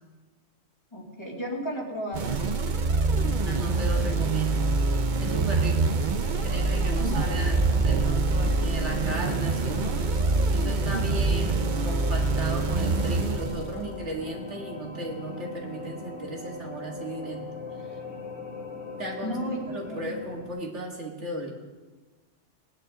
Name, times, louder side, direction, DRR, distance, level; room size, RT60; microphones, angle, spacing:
voice 1, 0.9-2.6 7.0-7.3 19.2-19.6 19.9-20.0, equal, 20° left, -3 dB, 2.5 m, -34 dB
sound 1, 2.1-14.1, right 3 dB, 45° right, 0.8 m, -25 dB
voice 2, 3.4-4.7 5.2-6.0 6.4-7.6 7.8-9.9 10.2-17.4 17.9-18.0 19.0-21.5, right 1 dB, 70° right, -1 dB, 2.3 m, -36 dB
sound 2, 6.2-20.5, left 3 dB, 85° left, 2.5 m, -40 dB
20.0 x 10.0 x 3.7 m, 1.3 s
omnidirectional pair, 1.2 m